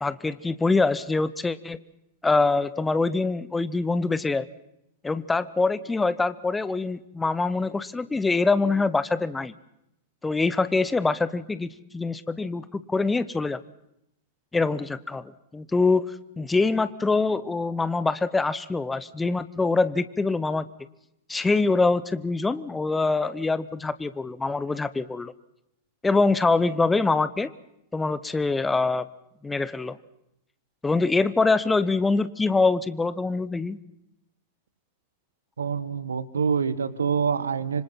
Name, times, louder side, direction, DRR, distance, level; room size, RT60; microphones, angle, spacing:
voice 1, 0.0-1.8 2.2-4.5 5.0-9.5 10.2-11.7 11.9-13.6 14.5-20.7 21.3-25.3 26.0-27.5 27.9-29.1 29.4-30.0 30.8-33.8, left 3 dB, 10° left, 15 dB, 1.0 m, -24 dB
voice 2, 35.6-37.8, right 6 dB, 75° right, 16 dB, 1.4 m, -26 dB
26.0 x 25.5 x 5.8 m, 0.82 s
figure-of-eight pair, 95°, 0 cm